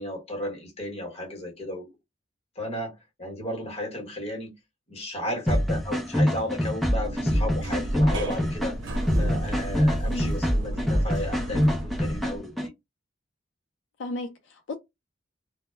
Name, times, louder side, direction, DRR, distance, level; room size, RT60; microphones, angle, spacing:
voice 1, 0.0-1.9 2.6-2.9 3.2-4.5 4.9-8.8 9.2-12.5, left 1 dB, 35° left, 1.0 m, -34 dB
sound 1, 5.5-12.7, equal, ahead, 0.5 m, -25 dB
sound 2, 6.8-12.4, right 1 dB, 90° right, 0.7 m, -32 dB
voice 2, 10.0-10.3 14.0-14.7, left 2 dB, 80° left, 0.4 m, -34 dB
2.1 x 2.0 x 3.2 m
head